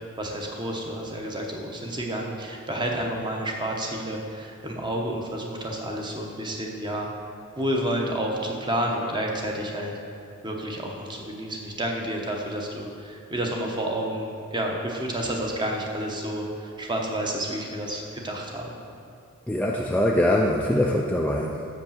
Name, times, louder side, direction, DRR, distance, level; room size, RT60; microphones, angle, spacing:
voice 1, 0.2-7.1 7.6-9.9 10.4-18.8, right 1 dB, 20° right, 0 dB, 0.9 m, -30 dB
voice 2, 19.5-21.7, left 1 dB, 5° left, -1 dB, 0.3 m, -23 dB
6.6 x 5.2 x 7.1 m, 2.6 s
head